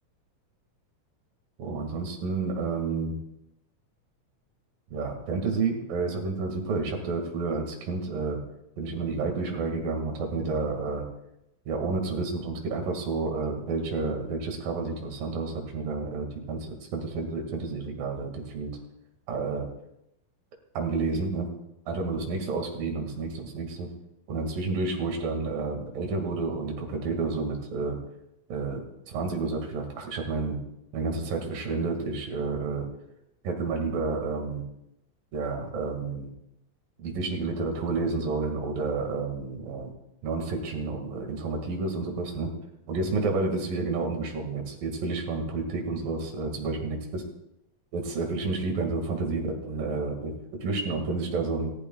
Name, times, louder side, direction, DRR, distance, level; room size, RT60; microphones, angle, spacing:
voice 1, 1.6-3.2 4.9-8.4 8.8-11.1 11.7-18.7 19.3-19.7 20.8-21.5 21.9-23.9 24.3-28.0 28.5-30.6 30.9-32.8 33.4-34.6 35.3-36.3 37.0-39.9 40.2-42.5 42.9-47.2 47.9-50.3 50.6-51.7, right 3 dB, 80° right, 2 dB, 3.8 m, -30 dB
29.0 x 15.0 x 2.4 m, 0.82 s
omnidirectional pair, 3.9 m